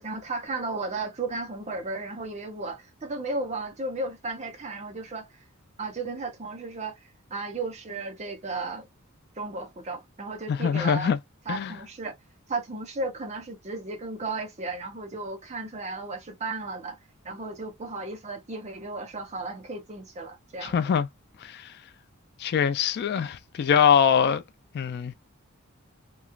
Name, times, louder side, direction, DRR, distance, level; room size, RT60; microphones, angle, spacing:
voice 1, 0.0-5.3 5.8-7.0 7.3-8.9 9.4-11.1 11.5-12.1 12.5-17.0 17.2-20.8, right 3 dB, 35° right, 0.8 m, -34 dB
voice 2, 10.5-11.2 11.5-11.7 20.6-21.1 21.4-21.7 22.4-24.4 24.7-25.1, left 7 dB, 50° left, 0.3 m, -23 dB
3.0 x 2.3 x 2.3 m
head